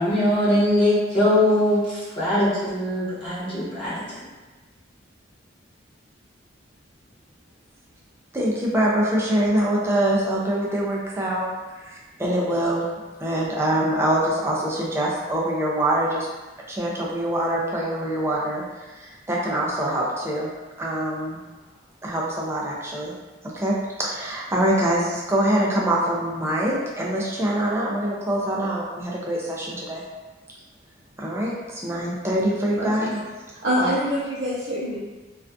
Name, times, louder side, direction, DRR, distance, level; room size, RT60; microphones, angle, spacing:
voice 1, 0.0-4.3, left 1 dB, 25° left, -12 dB, 1.1 m, -21 dB
voice 2, 8.3-11.5 11.8-12.8 13.2-16.3 16.7-18.6 18.9-20.5 20.8-21.4 22.0-23.1 23.5-30.0 31.2-33.2 33.8-33.9, right 1 dB, 15° right, -4 dB, 0.4 m, -24 dB
voice 3, 32.8-33.1 33.6-35.0, equal, 60° right, -10 dB, 0.6 m, -25 dB
2.4 x 2.4 x 2.2 m, 1.2 s
head